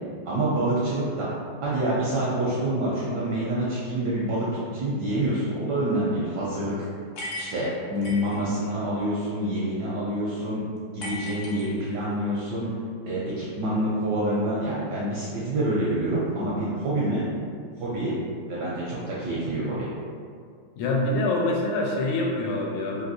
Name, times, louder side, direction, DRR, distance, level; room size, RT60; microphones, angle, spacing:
voice 1, 0.3-1.3 1.6-6.8 7.4-10.6 10.9-12.7 13.1-17.2 17.8-18.1 18.5-19.9, right 1 dB, 75° right, -7 dB, 1.0 m, -27 dB
sound 1, 7.2-8.4 11.0-12.2, left 1 dB, 65° left, 0.9 m, -36 dB
voice 2, 8.1-8.5 17.9-18.3 20.8-23.0, left 2 dB, 80° left, -1 dB, 1.4 m, -26 dB
3.4 x 2.7 x 2.6 m, 2.2 s
omnidirectional pair, 2.3 m